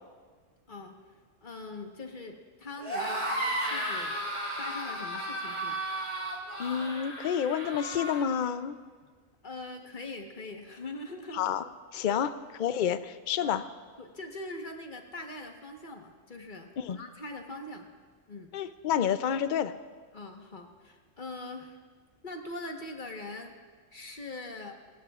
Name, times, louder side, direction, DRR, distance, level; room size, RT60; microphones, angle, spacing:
voice 1, 1.4-4.3 4.6-5.8 9.4-11.4 12.1-12.2 13.4-13.6 14.0-17.9 18.3-18.5 20.1-21.8 22.2-23.5 23.9-24.7, left 2 dB, 40° left, 3 dB, 1.4 m, -42 dB
sound 1, 2.8-8.2, right 1 dB, 20° right, 2.8 m, -34 dB
voice 2, 6.6-8.8 11.3-11.6 11.9-12.3 12.6-13.6 16.8-17.0 18.5-19.7, left 8 dB, 55° left, 12 dB, 0.5 m, -29 dB
26.5 x 15.0 x 2.4 m, 1.5 s
omnidirectional pair, 1.4 m